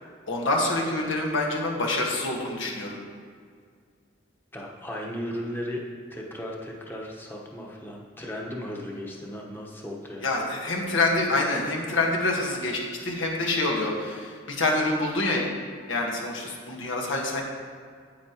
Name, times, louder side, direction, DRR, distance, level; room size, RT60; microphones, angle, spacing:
voice 1, 0.3-3.0 10.2-15.4 15.9-17.4, left 2 dB, 80° left, -1 dB, 1.4 m, -26 dB
voice 2, 4.5-5.8 6.1-10.3, equal, 10° left, -2 dB, 1.0 m, -36 dB
9.2 x 8.5 x 2.9 m, 2.1 s
head